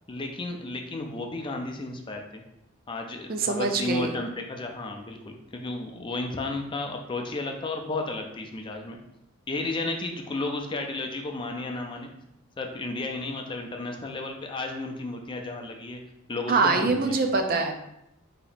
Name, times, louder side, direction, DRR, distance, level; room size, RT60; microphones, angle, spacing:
voice 1, 0.1-2.4 2.9-9.0 9.5-12.1 12.6-16.0 16.3-17.2, left 2 dB, 25° left, 3 dB, 0.4 m, -33 dB
voice 2, 3.3-4.1 16.5-17.7, right 3 dB, 45° right, 5 dB, 0.5 m, -24 dB
4.2 x 2.9 x 4.0 m, 0.83 s
head